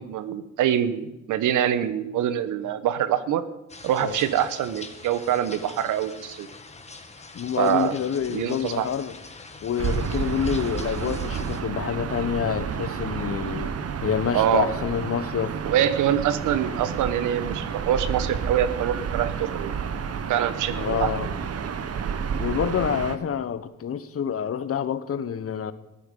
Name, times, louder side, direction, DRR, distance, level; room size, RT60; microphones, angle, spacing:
voice 1, 0.0-3.4 3.8-6.5 7.6-7.9 8.3-8.9 14.3-14.7 15.6-19.7 20.3-21.1, right 10 dB, 85° right, 1.1 m, -24 dB
sound 1, 3.7-11.6, left 3 dB, 20° left, 1.9 m, -43 dB
voice 2, 7.3-9.1 9.6-13.8 14.0-15.6 20.7-21.3 22.4-25.7, left 8 dB, 50° left, 1.1 m, -27 dB
Gull seagull / Ocean, 9.8-23.2, right 6 dB, 55° right, 1.3 m, -30 dB
15.5 x 13.0 x 5.4 m
cardioid pair, 90°, 30 cm